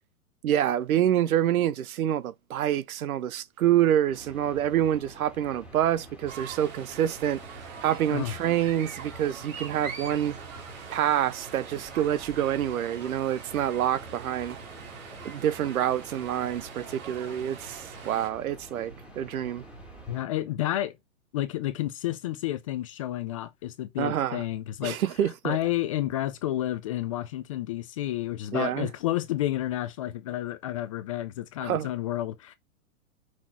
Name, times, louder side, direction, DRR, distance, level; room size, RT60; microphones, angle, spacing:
voice 1, 0.4-10.4 10.9-14.6 15.2-19.6 24.0-24.4 24.8-25.6 28.5-28.9 31.6-31.9, right 11 dB, 75° right, 0.8 m, -27 dB
sound 1, 4.1-20.2, right 1 dB, 5° right, 1.8 m, -47 dB
sound 2, 6.3-18.3, right 6 dB, 60° right, 2.6 m, -43 dB
voice 2, 20.1-21.0 21.3-25.0 25.4-32.5, left 14 dB, 25° left, 0.4 m, -30 dB
6.0 x 4.3 x 4.4 m
hypercardioid pair, 135°, 43 cm